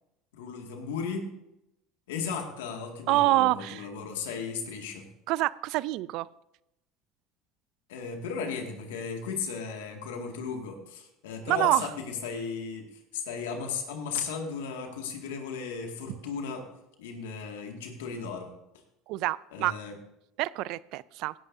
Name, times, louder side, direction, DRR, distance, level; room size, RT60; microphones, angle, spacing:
voice 1, 0.3-1.3 2.1-5.0 7.9-16.7 17.0-18.5 19.5-19.9, left 5 dB, 90° left, 3 dB, 2.1 m, -35 dB
voice 2, 3.1-3.8 5.3-6.3 11.5-11.9 19.1-19.7 20.4-21.3, right 18 dB, 65° right, 21 dB, 0.3 m, -26 dB
17.0 x 11.0 x 2.7 m, 0.87 s
supercardioid pair, 100°, 0 cm